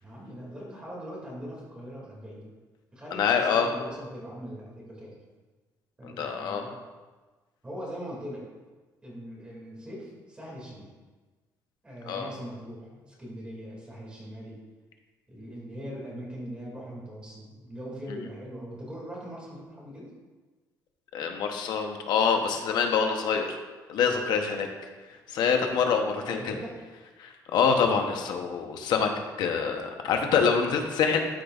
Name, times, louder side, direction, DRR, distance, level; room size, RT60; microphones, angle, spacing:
voice 1, 0.0-2.5 2.9-5.2 6.0-6.8 7.6-8.4 9.0-10.9 11.8-14.6 15.3-20.1 25.8-26.8, equal, 15° right, -5 dB, 2.2 m, -41 dB
voice 2, 3.1-3.7 6.0-6.6 12.1-12.3 21.1-23.6 23.9-24.7 25.3-26.5 27.2-29.1 29.4-31.4, left 6 dB, 75° left, 4 dB, 0.8 m, -25 dB
12.5 x 5.1 x 2.4 m, 1.3 s
cardioid pair, 170°, 7 cm